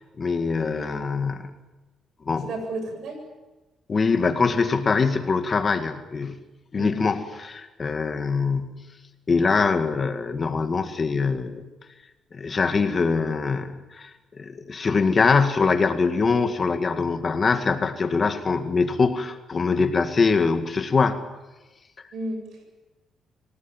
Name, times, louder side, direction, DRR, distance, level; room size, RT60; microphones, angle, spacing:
voice 1, 0.2-1.5 2.3-2.5 3.9-6.4 6.7-8.9 9.3-11.6 12.3-14.1 14.4-21.3, left 4 dB, 35° left, 8 dB, 2.1 m, -23 dB
voice 2, 0.7-1.1 2.4-3.2 6.8-7.2 22.1-22.7, right 2 dB, 70° right, 5 dB, 7.9 m, -33 dB
26.0 x 18.0 x 9.2 m, 1.1 s
cardioid pair, 90°, 0 cm